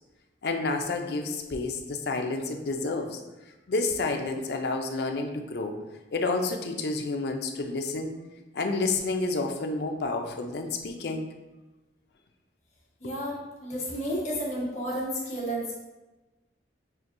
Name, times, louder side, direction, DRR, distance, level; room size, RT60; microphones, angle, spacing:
voice 1, 0.4-3.2 3.7-5.8 6.1-8.1 8.5-11.2 13.0-13.1, left 3 dB, 60° left, 4 dB, 0.4 m, -29 dB
voice 2, 13.0-15.7, equal, 40° left, -5 dB, 1.1 m, -32 dB
5.6 x 2.6 x 2.6 m, 1.1 s
head